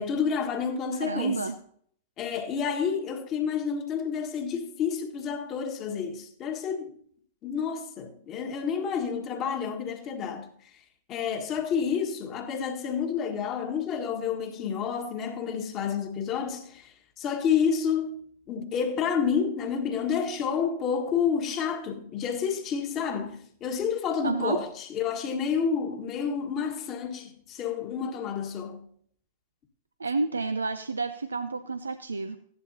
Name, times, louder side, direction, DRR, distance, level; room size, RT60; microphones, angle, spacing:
voice 1, 0.0-1.4 2.2-6.9 7.4-10.5 11.1-28.9, left 7 dB, 35° left, 1.6 m, -29 dB
voice 2, 0.9-1.6 24.2-24.6 30.0-32.4, right 4 dB, 80° right, 0.5 m, -30 dB
15.0 x 11.0 x 2.8 m
figure-of-eight pair, 100°, 0 cm